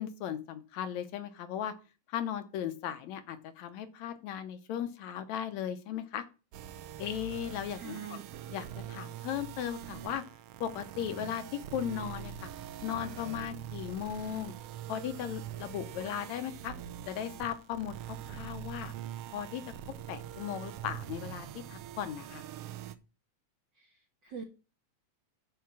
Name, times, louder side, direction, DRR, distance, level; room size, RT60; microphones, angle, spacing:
voice 1, 0.0-1.7 2.1-6.2 7.0-8.2 8.5-10.2 10.6-12.5 12.8-14.5 14.9-16.7 17.1-18.9 19.3-19.6 20.1-22.4, left 9 dB, 75° left, 10 dB, 2.0 m, -37 dB
sound 1, 6.5-23.0, right 11 dB, 85° right, 1.3 m, -44 dB
voice 2, 7.7-8.2 8.5-8.6 23.7-24.4, right 7 dB, 60° right, 2 dB, 1.2 m, -44 dB
10.0 x 4.8 x 7.4 m, 0.34 s
omnidirectional pair, 3.5 m